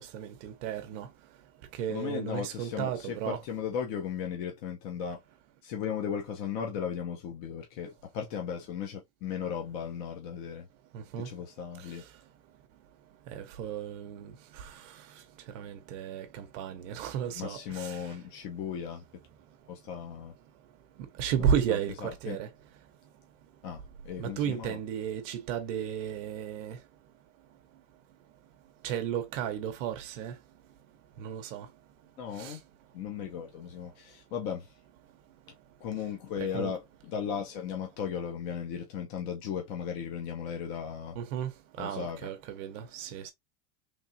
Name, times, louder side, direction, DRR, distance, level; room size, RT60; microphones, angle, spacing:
voice 1, 0.1-1.1 1.8-3.4 10.9-11.3 13.3-14.7 15.5-18.0 21.2-22.5 24.2-26.8 28.8-30.3 31.2-31.7 32.4-32.6 36.5-36.7 41.2-41.5 41.8-43.3, right 8 dB, 50° right, 0.8 m, -33 dB
voice 2, 1.9-5.2 5.6-10.7 11.2-12.0 17.3-19.0 19.7-20.3 21.4-22.4 23.6-24.8 32.2-32.6 32.9-34.7 35.8-41.2 41.8-42.3, left 7 dB, 35° left, 0.7 m, -36 dB
3.7 x 3.3 x 2.6 m
supercardioid pair, 160°, 49 cm